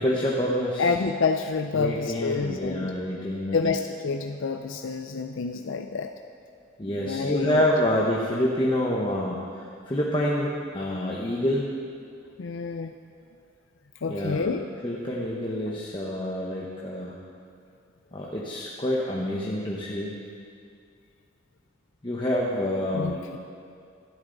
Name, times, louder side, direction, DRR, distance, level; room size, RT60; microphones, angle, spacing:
voice 1, 0.0-0.9 1.7-3.6 6.8-11.7 14.1-14.5 14.8-17.2 18.1-20.2 22.0-23.2, left 1 dB, 25° left, -4 dB, 1.0 m, -27 dB
voice 2, 0.8-2.9 3.5-6.1 6.9-7.6 12.4-12.9 14.0-14.7 22.9-23.4, left 4 dB, 75° left, 6 dB, 0.5 m, -28 dB
17.5 x 12.5 x 4.0 m, 2.3 s
head